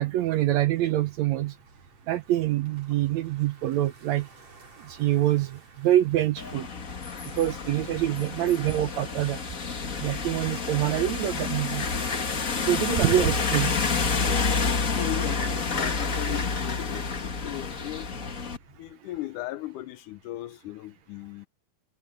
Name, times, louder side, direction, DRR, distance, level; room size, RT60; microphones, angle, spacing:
voice 1, 0.0-1.5 2.1-4.3 4.9-6.7 7.4-9.4 10.0-11.9 12.7-13.8, right 13 dB, 75° right, 1.7 m, -25 dB
sound 1, 0.7-18.9, right 3 dB, 50° right, 6.1 m, -56 dB
sound 2, 6.4-18.6, left 5 dB, 35° left, 1.5 m, -29 dB
voice 2, 15.0-18.1 18.8-21.5, left 16 dB, 80° left, 2.1 m, -37 dB
omnidirectional pair, 3.8 m